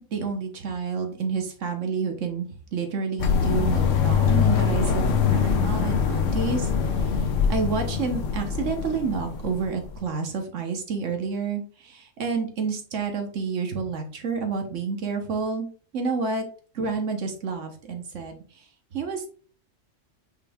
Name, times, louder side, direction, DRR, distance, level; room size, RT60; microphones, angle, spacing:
voice 1, 0.1-16.5 16.7-19.3, right 5 dB, 70° right, 5 dB, 1.6 m, -29 dB
sound 1, 3.2-10.0, left 6 dB, 75° left, 1.1 m, -23 dB
8.2 x 3.4 x 3.6 m, 0.41 s
omnidirectional pair, 1.3 m